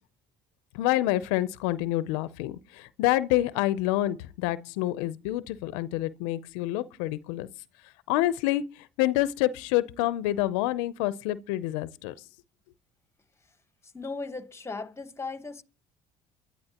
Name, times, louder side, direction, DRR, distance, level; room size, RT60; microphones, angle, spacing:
voice 1, 0.7-7.5 8.1-12.1, left 15 dB, 90° left, 0.6 m, -27 dB
voice 2, 13.8-15.6, left 3 dB, 15° left, 1.2 m, -37 dB
23.5 x 11.5 x 2.9 m
supercardioid pair, 80°, 15 cm